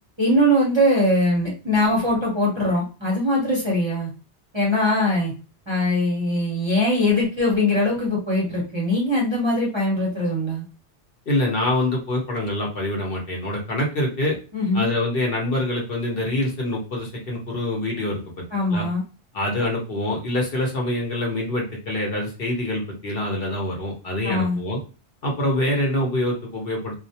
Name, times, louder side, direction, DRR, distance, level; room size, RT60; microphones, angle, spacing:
voice 1, 0.2-4.1 4.5-5.3 5.7-10.6 14.5-14.9 18.5-19.0 24.2-24.6, left 1 dB, 30° right, -4 dB, 0.6 m, -21 dB
voice 2, 11.3-14.4 14.7-18.4 18.7-18.8 19.3-24.8 25.2-27.0, left 1 dB, 60° left, -1 dB, 0.9 m, -25 dB
2.3 x 2.1 x 2.7 m, 0.34 s
omnidirectional pair, 1.2 m